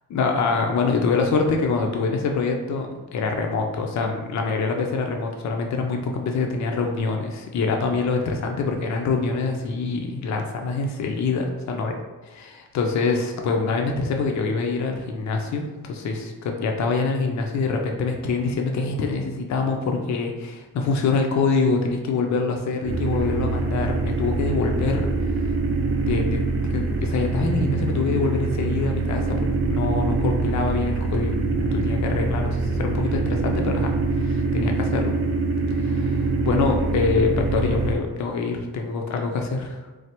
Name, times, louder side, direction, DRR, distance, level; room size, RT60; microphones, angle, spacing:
voice 1, 0.1-12.0 12.2-25.1 26.1-31.3 31.7-35.2 35.7-39.8, left 4 dB, 55° left, 3 dB, 0.5 m, -25 dB
sound 1, 22.8-38.0, right 3 dB, 40° right, 0.5 m, -24 dB
3.2 x 2.0 x 2.8 m, 1.2 s
cardioid pair, 75°, 34 cm